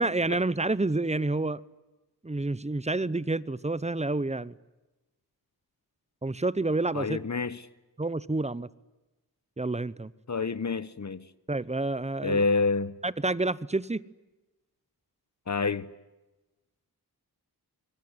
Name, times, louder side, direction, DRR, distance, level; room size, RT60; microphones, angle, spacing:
voice 1, 0.0-1.6 2.2-4.5 6.2-7.2 8.0-8.7 9.6-10.1 11.5-12.4 13.0-14.0, right 2 dB, 15° right, 0.9 m, -28 dB
voice 2, 6.9-7.6 10.3-11.3 12.2-13.0 15.5-15.9, left 4 dB, 45° left, 1.0 m, -28 dB
25.0 x 23.5 x 9.8 m
wide cardioid pair, 85°, 39 cm